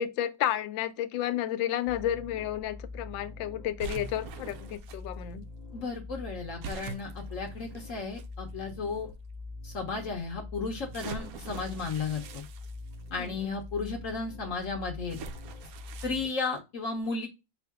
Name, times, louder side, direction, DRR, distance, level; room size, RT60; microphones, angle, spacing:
voice 1, 0.0-5.4 13.2-13.6, left 11 dB, 80° left, 1.3 m, -32 dB
sound 1, 1.9-16.3, left 2 dB, 25° left, 1.4 m, -44 dB
sound 2, 3.8-5.0 6.6-8.2 9.0-9.1 10.9-13.3 15.1-16.3, right 5 dB, 90° right, 0.8 m, -43 dB
voice 2, 5.7-9.1 9.6-12.4 13.1-15.2 16.0-17.3, left 4 dB, 55° left, 0.9 m, -34 dB
4.5 x 2.5 x 3.4 m
omnidirectional pair, 2.1 m